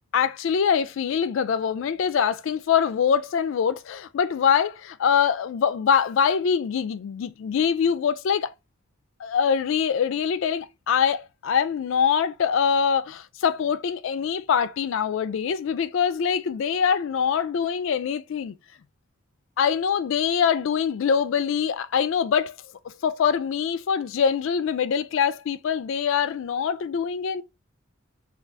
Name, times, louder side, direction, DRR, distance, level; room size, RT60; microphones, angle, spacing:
voice 1, 0.1-8.5 9.2-18.6 19.6-22.5 22.8-27.4, left 7 dB, 60° left, 0.3 m, -24 dB
2.6 x 2.3 x 3.3 m
head